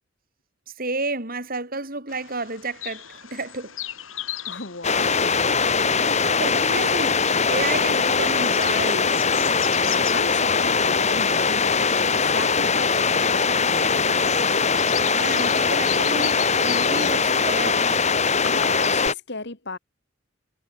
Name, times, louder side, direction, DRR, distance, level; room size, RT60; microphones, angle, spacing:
voice 1, 0.8-3.8 6.4-9.2 15.0-17.9, right 3 dB, 45° right, 7.6 m, -31 dB
Bird vocalization bird call bird song, 2.1-19.1, left 11 dB, 75° left, 7.8 m, -38 dB
voice 2, 4.5-5.3 9.7-14.3 18.4-19.8, left 3 dB, 55° left, 2.9 m, -36 dB
sound 1, 4.8-19.1, left 5 dB, 35° left, 3.1 m, -21 dB
head